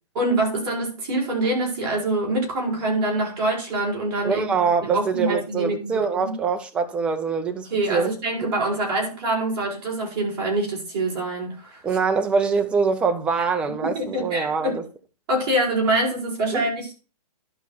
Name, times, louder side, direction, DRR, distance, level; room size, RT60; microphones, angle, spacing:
voice 1, 0.1-4.4 4.9-6.3 7.7-11.8 13.9-14.8 15.3-16.9, right 2 dB, 40° right, 6.2 m, -25 dB
voice 2, 4.2-8.1 11.8-14.8 16.5-16.7, right 5 dB, 5° right, 0.5 m, -24 dB
12.0 x 5.8 x 4.2 m
hypercardioid pair, 160°, 20 cm